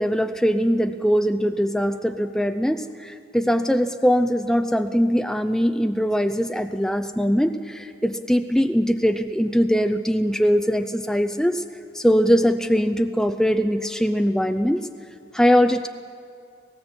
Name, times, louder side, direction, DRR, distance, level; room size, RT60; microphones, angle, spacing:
voice 1, 0.0-11.6 11.9-14.9 15.3-15.9, equal, 5° left, 8 dB, 0.5 m, -21 dB
18.5 x 17.5 x 7.9 m, 2.3 s
head